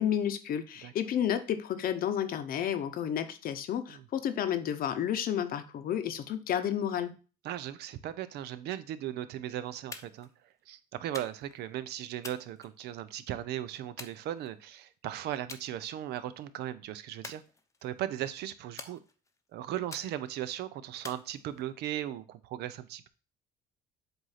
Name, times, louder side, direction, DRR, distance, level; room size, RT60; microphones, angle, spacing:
voice 1, 0.0-7.2, left 9 dB, 60° left, 0.8 m, -31 dB
voice 2, 7.4-10.3 10.7-17.4 17.8-19.0 19.5-23.1, right 12 dB, 80° right, 0.7 m, -37 dB
sound 1, 9.9-10.3 11.1-11.6 12.2-13.2 14.0-14.8 15.5-15.7 16.1-16.4 17.2-18.0 18.8-19.4 19.9-20.5 21.0-21.8, left 3 dB, 20° left, 0.8 m, -47 dB
7.9 x 2.6 x 5.7 m
cardioid pair, 110°, 17 cm